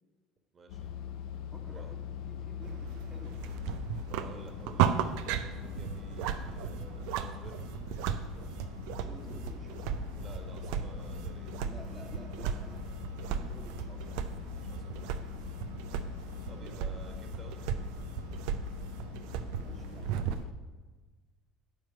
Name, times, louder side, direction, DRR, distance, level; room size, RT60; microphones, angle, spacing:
voice 1, 0.5-0.9 1.6-1.9 4.0-7.7 10.2-11.6 14.7-15.1 16.5-17.6, right 3 dB, 35° right, 4 dB, 1.6 m, -52 dB
sound 1, 0.7-20.5, left 10 dB, 60° left, 0.5 m, -43 dB
voice 2, 1.5-3.5 8.9-10.0 11.6-12.8 13.3-14.3 16.6-16.8 19.5-20.3, right 2 dB, 15° right, -2 dB, 1.3 m, -52 dB
sound 2, 2.6-20.4, right 9 dB, 65° right, 0.4 m, -36 dB
9.5 x 4.4 x 7.4 m, 1.3 s
figure-of-eight pair, 60°, 0 cm